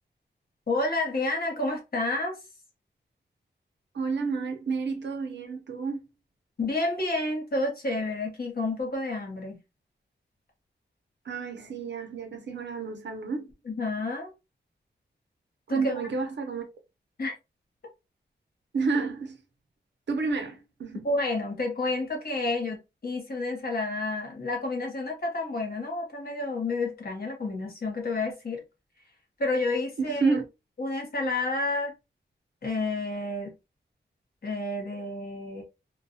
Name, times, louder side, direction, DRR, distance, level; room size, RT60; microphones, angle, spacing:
voice 1, 0.7-2.4 6.6-9.6 13.7-14.3 15.7-15.9 17.2-17.3 21.0-28.6 29.4-30.4 30.8-31.9 32.6-33.5 34.4-35.6, left 2 dB, 55° left, 1.1 m, -30 dB
voice 2, 3.9-6.1 11.2-13.5 15.7-16.6 18.7-19.4 20.1-21.1 30.0-30.4, right 4 dB, 70° right, 0.7 m, -30 dB
2.3 x 2.3 x 2.7 m
wide cardioid pair, 145°, 19 cm